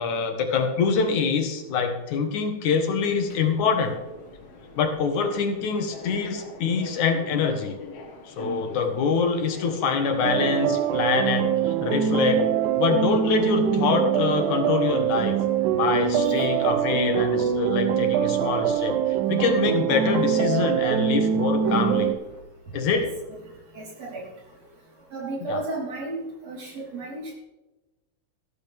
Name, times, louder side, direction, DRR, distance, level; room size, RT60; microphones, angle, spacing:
voice 1, 0.0-4.0 4.8-7.8 8.3-12.4 12.8-15.4 15.7-22.1 22.7-23.1 25.5-25.6, left 5 dB, 80° left, 5 dB, 3.0 m, -25 dB
Subway metro underground, 3.0-22.4, left 3 dB, 55° left, 2.4 m, -43 dB
sound 1, 10.2-22.1, right 8 dB, 85° right, 2.2 m, -24 dB
voice 2, 16.1-16.6 21.7-22.0 22.9-23.1 23.8-24.2 25.1-27.3, right 2 dB, 60° right, -4 dB, 5.2 m, -34 dB
14.0 x 13.5 x 3.5 m, 1.1 s
omnidirectional pair, 3.3 m